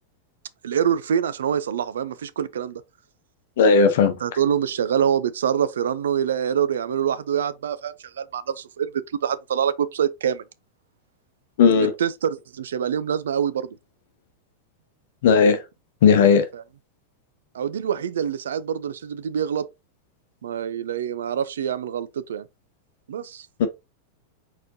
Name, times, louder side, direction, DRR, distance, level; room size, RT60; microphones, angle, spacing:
voice 1, 0.6-2.8 4.2-8.9 9.2-10.4 12.0-13.8 16.5-16.6 17.5-19.7 20.4-22.5 23.1-23.5, right 8 dB, 65° right, 0.4 m, -25 dB
voice 2, 3.6-4.2 11.6-11.9 15.2-15.6 16.0-16.5 23.6-23.7, left 5 dB, 55° left, 0.8 m, -16 dB
4.3 x 4.2 x 2.7 m
figure-of-eight pair, 90°, 0 cm